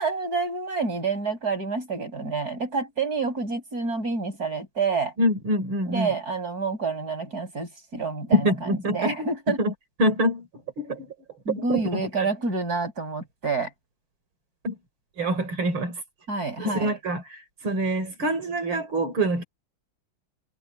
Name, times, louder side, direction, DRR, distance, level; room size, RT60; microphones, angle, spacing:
voice 1, 0.0-5.1 5.9-8.5 8.9-9.6 11.5-13.7 16.3-16.9, right 4 dB, 45° right, 7.8 m, -28 dB
voice 2, 5.2-6.1 8.3-9.3 9.6-9.7 10.0-10.5 10.8-11.1 11.6-12.3 14.6-14.8 15.2-16.0 16.6-19.4, equal, 80° right, 4.4 m, -25 dB
omnidirectional pair, 2.2 m